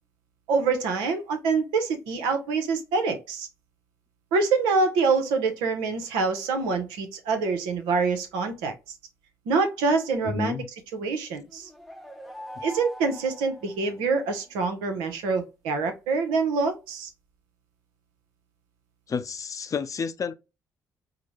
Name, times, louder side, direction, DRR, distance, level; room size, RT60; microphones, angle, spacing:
voice 1, 0.5-3.5 4.3-8.7 9.5-10.6 10.9-11.7 12.6-17.1, right 4 dB, 80° right, 0.8 m, -25 dB
voice 2, 10.2-10.7 12.6-12.7 19.1-20.3, left 6 dB, 45° left, 0.5 m, -30 dB
sound 1, 11.5-14.4, left 1 dB, ahead, 0.7 m, -43 dB
4.8 x 2.1 x 2.9 m
hypercardioid pair, 50°, 8 cm